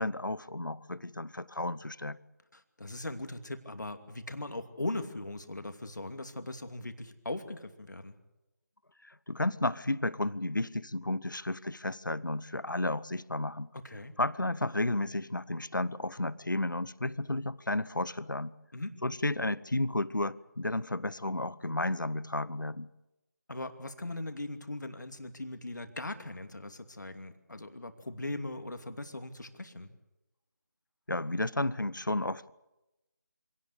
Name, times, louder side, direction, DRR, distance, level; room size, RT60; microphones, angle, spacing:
voice 1, 0.0-2.2 9.0-13.7 14.2-18.5 19.0-22.9 31.1-32.5, left 2 dB, 85° left, 1.0 m, -32 dB
voice 2, 2.5-8.2 13.7-14.1 18.7-19.0 23.5-29.9, left 2 dB, 70° left, 2.6 m, -39 dB
26.0 x 18.0 x 8.4 m
figure-of-eight pair, 160°, 10 cm